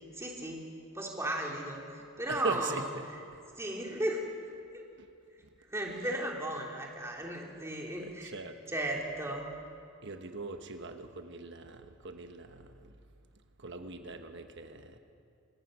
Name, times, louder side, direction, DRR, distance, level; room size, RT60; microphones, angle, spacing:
voice 1, 0.1-0.6 0.9-2.8 3.6-4.2 4.7-4.9 5.6-8.3 8.7-9.5, right 1 dB, 10° right, -1 dB, 2.7 m, -35 dB
voice 2, 2.3-3.1 5.0-5.1 6.0-6.1 8.0-8.6 10.0-12.9 13.6-15.0, right 3 dB, 55° right, 7 dB, 1.3 m, -41 dB
26.0 x 18.0 x 6.3 m, 2.4 s
head